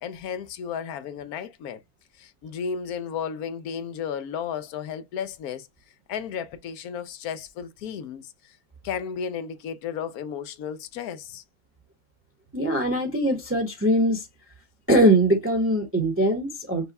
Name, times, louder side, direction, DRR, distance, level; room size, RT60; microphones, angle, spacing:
voice 1, 0.0-1.8 2.2-5.7 6.1-8.6 8.8-11.4, left 7 dB, 85° left, 1.1 m, -33 dB
voice 2, 12.5-14.3 14.9-16.9, right 1 dB, 10° right, 0.8 m, -21 dB
5.6 x 2.3 x 4.0 m
omnidirectional pair, 1.5 m